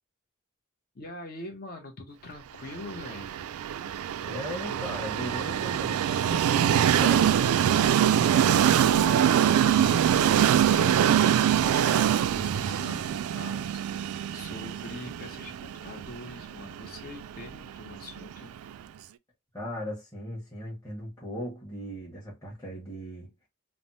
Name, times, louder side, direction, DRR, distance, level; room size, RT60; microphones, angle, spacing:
voice 1, 0.9-3.3 8.0-18.5, left 2 dB, 45° left, 0.7 m, -44 dB
Train, 2.9-18.7, right 9 dB, 90° right, 0.3 m, -24 dB
voice 2, 4.0-7.5 19.5-23.3, equal, 15° left, 1.0 m, -38 dB
3.3 x 2.0 x 2.6 m
head